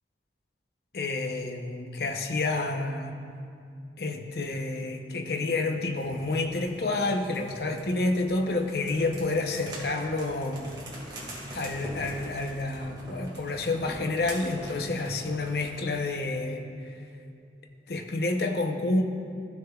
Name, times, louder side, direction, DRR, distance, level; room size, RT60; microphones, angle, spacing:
voice 1, 0.9-3.2 4.0-10.7 11.5-16.6 17.9-19.0, left 2 dB, 60° left, 4 dB, 0.7 m, -29 dB
sound 1, 5.9-16.0, right 1 dB, 25° right, 1.9 m, -44 dB
14.5 x 6.6 x 2.3 m, 2.4 s
head